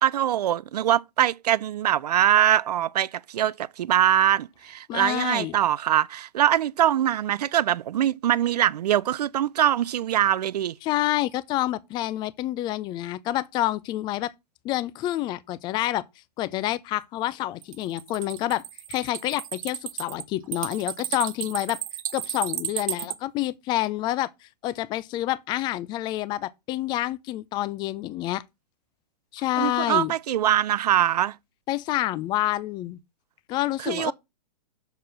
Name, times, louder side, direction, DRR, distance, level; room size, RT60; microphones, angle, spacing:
voice 1, 0.0-10.8 29.6-31.3 33.8-34.1, right 11 dB, 70° right, 0.4 m, -23 dB
voice 2, 4.9-5.6 10.8-14.3 14.6-16.0 16.4-18.6 18.9-21.8 22.1-28.4 29.3-30.1 31.7-33.0 33.5-34.1, left 15 dB, 20° left, 0.4 m, -28 dB
sound 1, 17.6-23.2, right 12 dB, 55° right, 0.9 m, -33 dB
6.8 x 4.4 x 6.3 m
hypercardioid pair, 125°, 21 cm